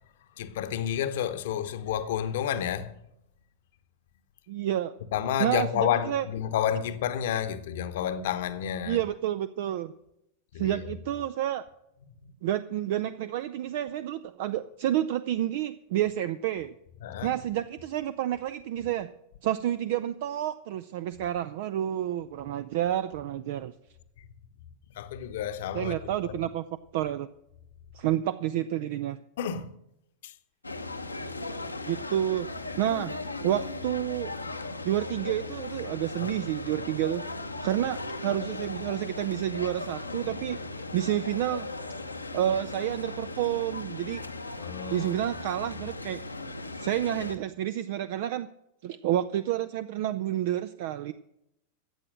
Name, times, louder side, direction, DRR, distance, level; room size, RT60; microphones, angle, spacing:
voice 1, 0.4-2.9 5.1-9.0 10.5-10.9 17.0-17.4 24.2-24.3 24.9-26.4 29.4-29.7 30.2-30.3 36.2-36.4 44.6-45.2 45.8-45.9, left 9 dB, 55° left, 1.0 m, -30 dB
voice 2, 4.5-4.9 5.4-6.2 8.9-9.9 10.6-11.6 12.4-16.7 17.2-19.1 19.4-23.7 25.7-26.6 26.9-27.3 27.9-29.2 31.9-32.5 32.8-33.1 33.4-34.3 34.8-37.2 37.6-41.7 42.3-44.2 44.9-46.2 46.8-48.5 48.8-51.1, right 12 dB, 50° right, 0.5 m, -29 dB
sound 1, 30.6-47.4, left 2 dB, 85° left, 0.9 m, -37 dB
14.5 x 8.7 x 6.2 m
figure-of-eight pair, 90°, 0 cm